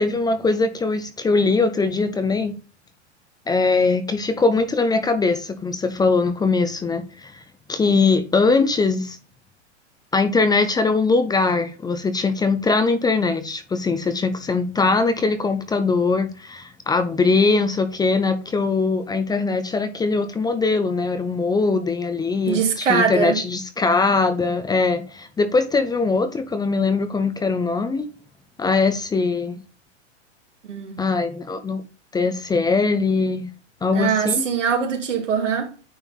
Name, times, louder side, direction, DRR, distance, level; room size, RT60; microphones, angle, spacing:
voice 1, 0.0-2.5 3.5-7.4 7.7-9.2 10.1-28.1 28.6-29.6 31.0-31.8 32.1-33.5 33.8-34.4, left 4 dB, 10° left, 0.7 m, -21 dB
voice 2, 22.5-23.4 30.7-31.0 33.9-35.7, right 7 dB, 80° right, 2.9 m, -22 dB
9.3 x 4.4 x 3.7 m
hypercardioid pair, 115°, 36 cm